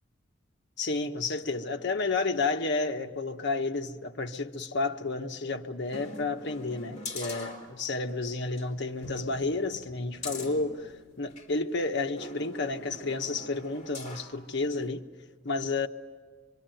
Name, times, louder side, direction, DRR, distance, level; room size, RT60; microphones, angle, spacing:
voice 1, 0.8-15.0 15.4-15.9, left 3 dB, 60° left, 1.2 m, -31 dB
sound 1, 5.9-8.1 8.5-8.6 9.0-11.5 12.2-14.4 14.8-14.9, left 2 dB, 35° left, 3.4 m, -43 dB
25.5 x 24.5 x 9.1 m
head